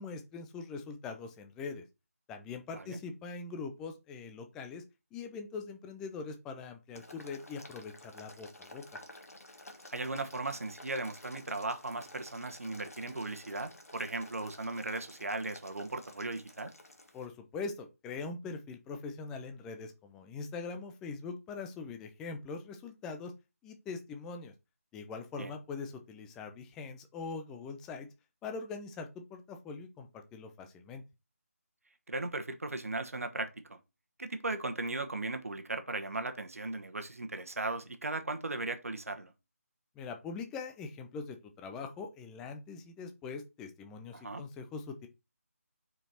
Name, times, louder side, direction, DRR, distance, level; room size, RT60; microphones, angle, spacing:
voice 1, 0.0-1.8 2.3-4.8 5.1-8.8 17.1-23.3 23.6-24.5 24.9-28.1 28.4-31.0 40.0-45.1, left 4 dB, 5° left, 0.4 m, -42 dB
voice 2, 2.7-3.0 9.9-16.7 25.4-25.5 32.1-33.8 34.2-39.3 44.1-44.4, right 2 dB, 65° right, 1.1 m, -37 dB
Boiling, 6.9-17.3, left 1 dB, 70° left, 1.5 m, -52 dB
5.1 x 4.6 x 4.3 m
figure-of-eight pair, 155°, 8 cm